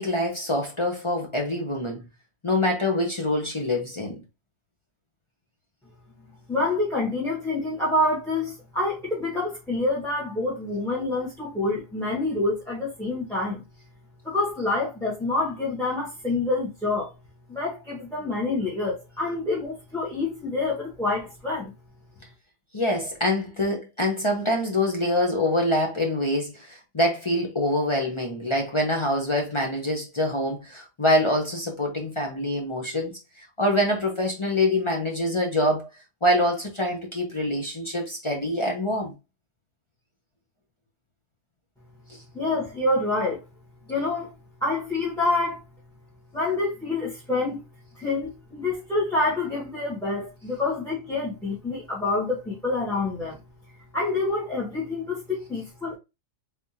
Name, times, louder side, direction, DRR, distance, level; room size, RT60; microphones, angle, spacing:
voice 1, 0.0-2.1 2.4-4.2 22.7-33.1 33.6-35.9 36.2-39.1 42.1-42.2, left 1 dB, 30° left, 0.7 m, -25 dB
voice 2, 6.5-13.6 14.2-17.1 17.5-21.7 42.3-43.4 43.9-44.3 44.6-45.6 46.3-47.6 47.9-53.4 53.9-56.0, left 2 dB, 5° left, 1.3 m, -27 dB
3.5 x 3.4 x 2.7 m
omnidirectional pair, 1.3 m